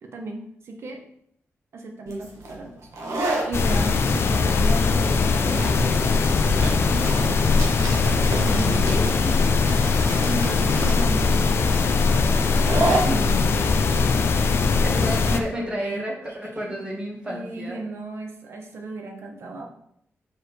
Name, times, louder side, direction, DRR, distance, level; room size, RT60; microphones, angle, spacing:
voice 1, 0.0-1.0 1.7-2.8 3.2-7.3 8.3-9.3 10.2-11.7 15.2-16.8 17.3-19.8, right 2 dB, 60° right, 2 dB, 1.0 m, -35 dB
sound 1, 2.1-15.5, right 2 dB, 80° right, 1.5 m, -31 dB
sound 2, 3.5-15.4, left 4 dB, 55° left, 0.5 m, -21 dB
voice 2, 8.5-9.3 12.2-14.0 14.8-17.8, equal, 20° right, -3 dB, 1.5 m, -32 dB
6.6 x 4.7 x 3.3 m, 0.70 s
wide cardioid pair, 180°, 5 cm